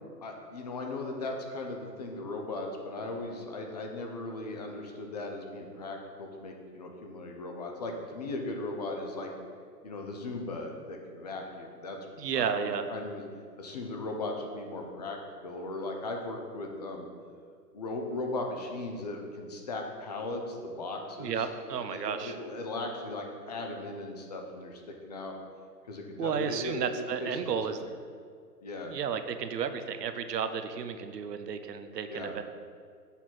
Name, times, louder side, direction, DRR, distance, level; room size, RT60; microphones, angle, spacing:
voice 1, 0.2-9.3 9.8-12.0 12.3-13.2 13.6-15.2 15.4-17.1 17.7-21.5 21.7-25.4 25.9-27.7 28.6-28.9 32.1-32.3, left 2 dB, 25° left, 2 dB, 0.6 m, -37 dB
voice 2, 12.2-12.9 21.2-22.3 26.2-27.8 28.9-32.4, right 7 dB, 75° right, 9 dB, 0.8 m, -32 dB
7.1 x 4.2 x 6.1 m, 2.1 s
hypercardioid pair, 150°, 49 cm